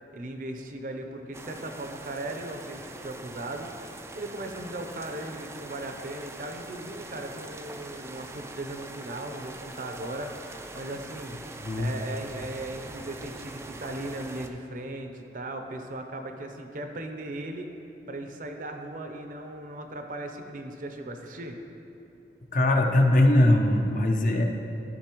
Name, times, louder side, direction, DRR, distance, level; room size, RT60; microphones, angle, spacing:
voice 1, 0.1-3.9 4.1-10.5 10.7-11.4 11.7-17.7 18.1-21.6, right 1 dB, 50° right, 5 dB, 0.6 m, -37 dB
sound 1, 1.3-14.5, right 2 dB, 15° right, 0.3 m, -43 dB
voice 2, 11.6-11.9 22.5-24.4, left 1 dB, 50° left, 3 dB, 0.7 m, -21 dB
13.5 x 5.4 x 3.0 m, 3.0 s
head